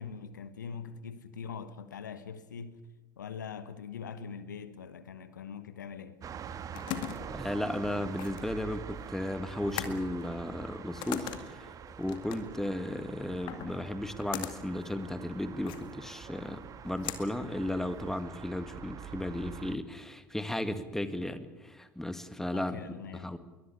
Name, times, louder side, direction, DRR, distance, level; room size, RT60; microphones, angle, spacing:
voice 1, 0.0-2.8 3.2-6.2 22.5-23.3, left 6 dB, 75° left, 1.3 m, -42 dB
sound 1, 6.2-19.8, right 8 dB, 35° right, 1.8 m, -45 dB
sound 2, 6.3-18.2, left 11 dB, 50° left, 2.1 m, -42 dB
voice 2, 7.3-22.8 23.1-23.4, left 1 dB, 5° left, 1.9 m, -35 dB
22.5 x 20.0 x 8.4 m
figure-of-eight pair, 70°, 10 cm